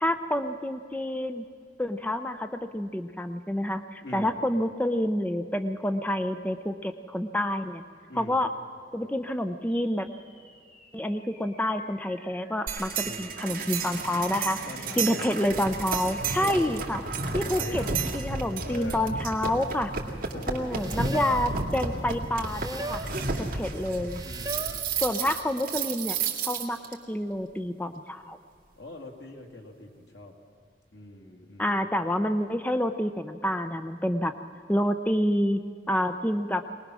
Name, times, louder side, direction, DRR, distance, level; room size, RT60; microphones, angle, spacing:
voice 1, 0.0-1.4 1.8-7.8 8.2-8.5 8.9-10.1 10.9-12.9 13.2-14.6 15.0-17.0 17.3-17.8 18.1-19.9 20.5-23.1 23.4-24.2 25.0-26.2 26.4-26.8 27.1-28.4 31.6-34.3 34.7-35.6 35.9-36.6, left 1 dB, 10° left, 9 dB, 0.6 m, -28 dB
voice 2, 4.0-4.4 8.1-8.4 13.0-13.4 14.7-15.3 16.4-16.8 17.5-17.9 18.6-19.0 20.3-21.1 23.1-23.8 24.2-24.8 28.8-30.3 30.9-31.8, left 2 dB, 85° left, 2 dB, 2.4 m, -42 dB
sound 1, 9.7-18.3, equal, 50° left, 7.9 m, -51 dB
sound 2, 12.7-26.9, right 4 dB, 55° right, 2.3 m, -32 dB
sound 3, 20.7-21.6 22.4-23.2 24.1-24.9, right 2 dB, 20° right, 1.0 m, -37 dB
23.0 x 19.5 x 6.3 m, 2.1 s
head